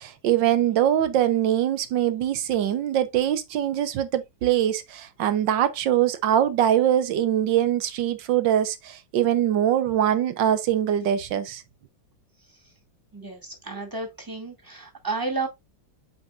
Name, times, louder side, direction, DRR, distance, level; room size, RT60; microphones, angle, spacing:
voice 1, 0.0-11.6, right 11 dB, 70° right, 1.5 m, -23 dB
voice 2, 13.1-15.5, right 3 dB, 10° right, 2.1 m, -32 dB
8.4 x 5.2 x 2.4 m
omnidirectional pair, 2.1 m